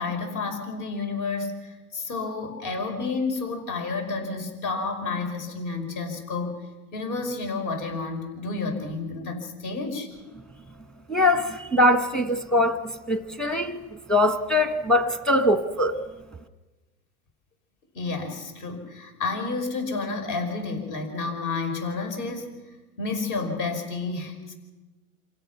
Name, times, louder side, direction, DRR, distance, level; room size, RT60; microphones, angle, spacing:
voice 1, 0.0-6.6 6.9-10.1 17.9-22.6 23.0-24.5, left 3 dB, 50° left, 5.5 m, -30 dB
voice 2, 11.1-12.8 13.1-13.8 14.1-16.0, left 1 dB, ahead, 1.2 m, -22 dB
27.5 x 17.0 x 5.9 m
supercardioid pair, 140°, 45 cm